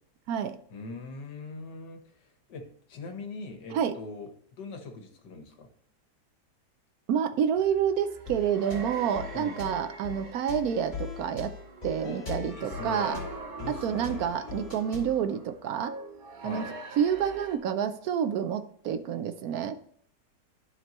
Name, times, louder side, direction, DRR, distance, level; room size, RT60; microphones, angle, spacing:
voice 1, 0.7-4.3 4.6-5.7 9.3-9.6 12.0-14.3 16.4-16.7, left 3 dB, 85° left, 5 dB, 1.8 m, -42 dB
voice 2, 7.1-11.5 11.8-13.2 13.8-15.9 16.4-16.7 17.0-19.8, right 8 dB, 70° right, 9 dB, 1.0 m, -28 dB
sound 1, 7.5-17.6, right 3 dB, 45° right, 0.7 m, -43 dB
sound 2, 8.3-15.2, left 6 dB, 30° left, 2.6 m, -41 dB
12.0 x 4.4 x 3.0 m, 0.65 s
omnidirectional pair, 1.8 m